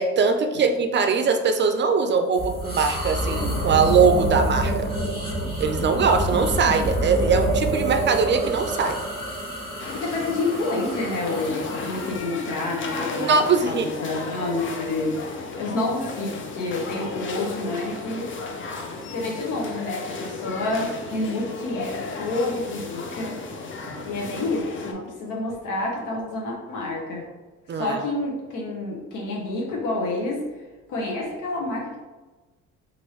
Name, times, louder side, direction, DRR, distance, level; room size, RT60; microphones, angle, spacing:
voice 1, 0.0-4.9 5.6-9.0 13.2-13.9 23.8-24.1 27.7-28.0, right 5 dB, 40° right, 6 dB, 0.4 m, -21 dB
sound 1, 2.3-12.1, right 2 dB, 20° left, 1.2 m, -27 dB
sound 2, 9.8-24.9, left 3 dB, 40° left, 0.5 m, -34 dB
voice 2, 9.9-13.4 13.7-18.3 19.1-23.4 24.0-27.2 27.7-30.5 30.9-32.0, left 2 dB, 90° left, -2 dB, 0.7 m, -28 dB
3.1 x 2.5 x 3.0 m, 1.2 s
cardioid pair, 90°, 30 cm